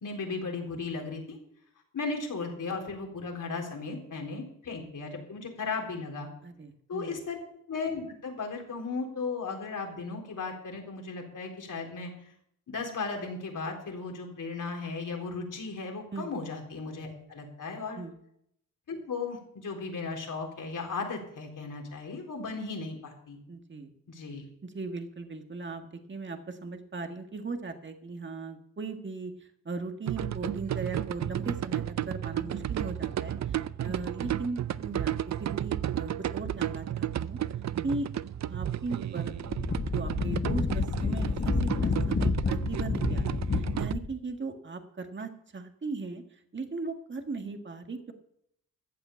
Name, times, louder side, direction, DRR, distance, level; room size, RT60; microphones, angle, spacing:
voice 1, 0.0-1.4 1.9-6.3 6.9-7.4 7.7-12.3 12.7-18.0 18.9-23.4 24.1-24.4, left 4 dB, 65° left, 1 dB, 3.9 m, -36 dB
voice 2, 6.4-7.2 16.1-16.3 18.0-18.2 23.5-23.9 24.6-35.1 35.4-37.4 37.8-38.1 38.5-39.3 39.8-48.1, right 3 dB, 35° right, 6 dB, 1.8 m, -38 dB
sound 1, 30.1-43.9, right 11 dB, 55° right, 0.5 m, -33 dB
Wind, 39.3-44.1, left 4 dB, 35° left, 1.1 m, -29 dB
14.5 x 8.1 x 7.1 m, 0.72 s
cardioid pair, 60°, 34 cm